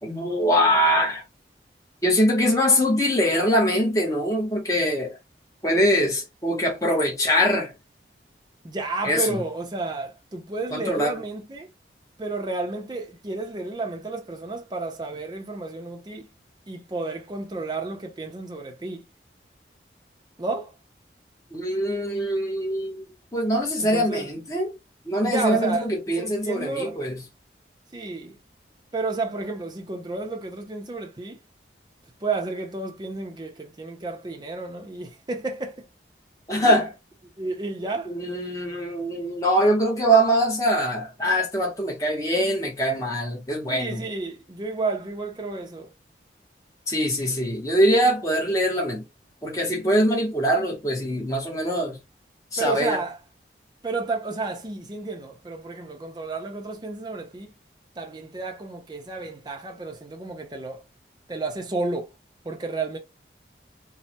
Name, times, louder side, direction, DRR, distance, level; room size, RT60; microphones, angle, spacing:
voice 1, 0.0-1.2 2.0-5.1 5.6-7.7 9.0-9.4 10.7-11.2 21.5-23.0 23.3-24.7 25.1-27.2 36.5-36.9 38.1-44.0 46.9-49.0 49.4-52.0 52.5-53.0, equal, 20° left, 0.8 m, -23 dB
voice 2, 8.6-11.7 12.2-16.3 16.7-19.0 20.4-20.7 23.8-24.3 25.2-25.8 26.1-27.0 27.9-28.4 28.9-31.4 32.2-35.8 36.6-36.8 37.4-38.1 43.7-45.9 52.6-53.2 53.8-57.5 58.0-60.8 61.3-62.1 62.4-63.0, right 3 dB, 25° right, 0.5 m, -31 dB
3.1 x 2.0 x 2.8 m
head